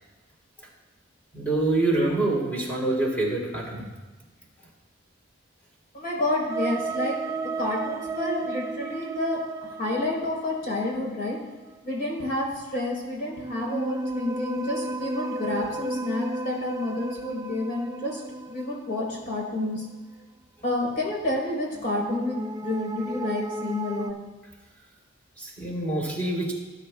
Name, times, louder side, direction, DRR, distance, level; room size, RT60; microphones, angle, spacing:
voice 1, 1.3-3.9 12.7-12.8 25.4-26.5, right 2 dB, 10° left, -3 dB, 3.2 m, -26 dB
voice 2, 5.9-7.2 7.6-9.4 9.8-11.4 11.8-18.2 18.5-19.8 20.6-24.2, left 2 dB, 50° left, -2 dB, 3.7 m, -29 dB
sound 1, 6.5-11.3 13.2-19.6 21.7-24.1, right 2 dB, 15° right, 0.3 m, -34 dB
18.5 x 9.2 x 2.3 m, 1.3 s
head